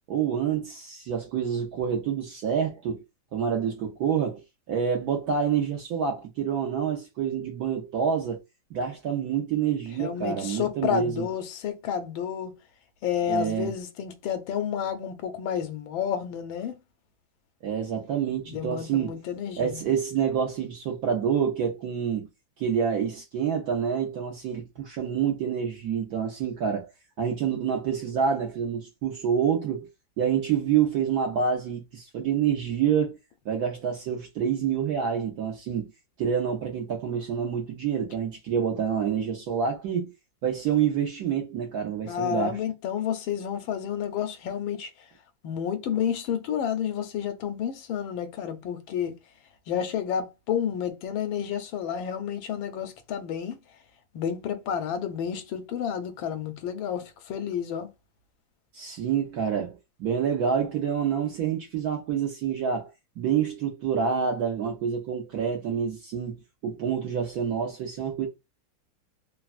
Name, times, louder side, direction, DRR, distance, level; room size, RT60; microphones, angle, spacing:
voice 1, 0.1-3.0 3.3-4.4 4.7-8.4 8.7-11.2 13.3-13.7 17.6-19.1 19.6-22.3 22.6-26.9 27.2-29.9 30.2-33.2 33.5-35.9 36.2-40.1 40.4-42.6 58.7-68.3, right 7 dB, 70° right, 0.9 m, -27 dB
voice 2, 10.0-12.6 13.0-16.7 18.5-19.8 42.1-44.9 45.4-49.2 49.7-53.6 54.1-57.9, left 8 dB, 85° left, 1.4 m, -30 dB
3.4 x 2.0 x 2.4 m
omnidirectional pair, 2.2 m